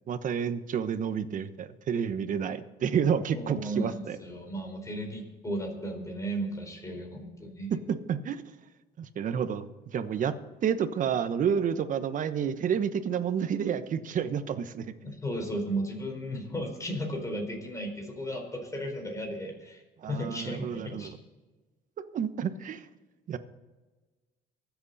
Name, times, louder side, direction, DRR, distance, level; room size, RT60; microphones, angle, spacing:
voice 1, 0.1-4.2 7.9-8.4 9.0-9.6 9.9-10.3 10.6-14.9 20.0-21.1 22.1-22.8 23.3-23.4, right 7 dB, 50° right, 10 dB, 1.1 m, -29 dB
voice 2, 3.4-7.8 15.0-19.8 20.1-21.1, equal, 20° left, 2 dB, 4.4 m, -35 dB
24.0 x 8.2 x 4.1 m, 1.2 s
cardioid pair, 110°, 17 cm